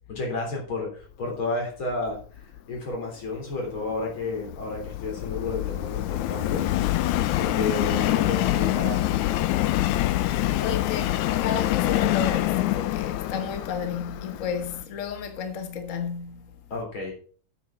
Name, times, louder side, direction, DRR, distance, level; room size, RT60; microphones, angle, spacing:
voice 1, 0.1-2.2 2.7-6.7 7.4-9.4 16.7-17.1, left 3 dB, 45° left, 4.0 m, -31 dB
Subway metro underground, 3.5-14.8, left 15 dB, 85° left, 2.1 m, -26 dB
voice 2, 10.1-16.5, left 6 dB, 65° left, 0.7 m, -33 dB
8.2 x 7.3 x 5.7 m
omnidirectional pair, 3.4 m